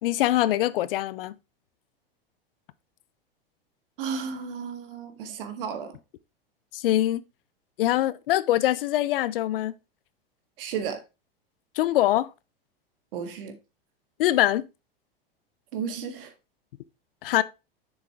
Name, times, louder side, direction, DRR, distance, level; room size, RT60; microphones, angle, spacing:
voice 1, 0.0-1.3 6.7-7.2 7.8-9.7 11.8-12.3 14.2-14.6 17.2-17.4, left 14 dB, 70° left, 0.6 m, -23 dB
voice 2, 4.0-6.0 10.6-11.0 13.1-13.6 15.7-16.3, right 6 dB, 65° right, 1.7 m, -33 dB
7.2 x 6.5 x 3.5 m
hypercardioid pair, 95°, 29 cm